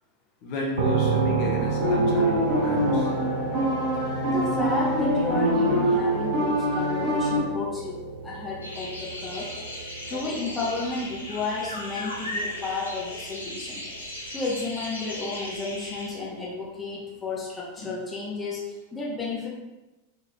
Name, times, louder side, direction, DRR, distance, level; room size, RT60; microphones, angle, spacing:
voice 1, 0.4-3.1 17.8-17.9, equal, 45° left, -2 dB, 0.9 m, -31 dB
sound 1, 0.7-14.5, right 5 dB, 55° right, 0.4 m, -32 dB
sound 2, 1.8-7.4, equal, 35° right, 1.3 m, -24 dB
voice 2, 4.2-9.5 10.1-13.8 14.3-19.5, left 3 dB, 15° left, -5 dB, 0.8 m, -32 dB
sound 3, 8.6-16.1, left 1 dB, 80° left, 0.9 m, -37 dB
3.8 x 3.3 x 2.9 m, 1.1 s
figure-of-eight pair, 90°, 0 cm